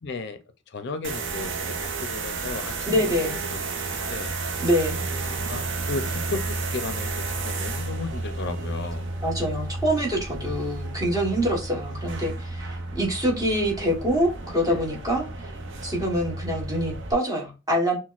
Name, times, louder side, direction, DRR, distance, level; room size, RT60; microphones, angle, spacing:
voice 1, 0.0-0.4 0.7-3.6 4.1-4.4 5.1-9.1 10.4-10.6 14.7-14.8, left 3 dB, 60° left, 0.5 m, -35 dB
sound 1, 1.0-17.1, right 3 dB, 65° right, 0.6 m, -32 dB
voice 2, 2.9-3.4 4.6-5.0 9.2-15.5 15.8-18.0, equal, 20° right, 1.1 m, -25 dB
6.0 x 2.1 x 2.4 m
head